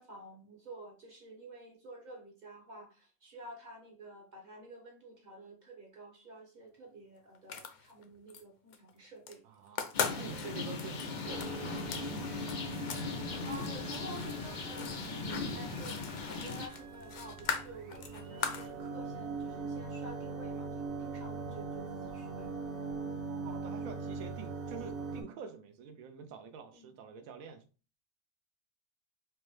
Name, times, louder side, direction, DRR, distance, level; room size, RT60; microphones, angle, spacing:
voice 1, 0.0-9.4 13.2-22.5 26.7-26.9, right 1 dB, 40° right, 0.8 m, -50 dB
sound 1, 7.3-8.4 8.7-9.3 9.7-13.1 13.3-18.7, left 6 dB, 65° left, 0.8 m, -39 dB
voice 2, 9.4-12.4 23.3-27.6, right 6 dB, 75° right, 1.0 m, -47 dB
sound 2, 9.9-16.7, left 4 dB, 90° left, 0.4 m, -39 dB
sound 3, 11.2-25.2, right 4 dB, 60° right, 0.4 m, -42 dB
4.6 x 2.1 x 3.0 m
omnidirectional pair, 1.5 m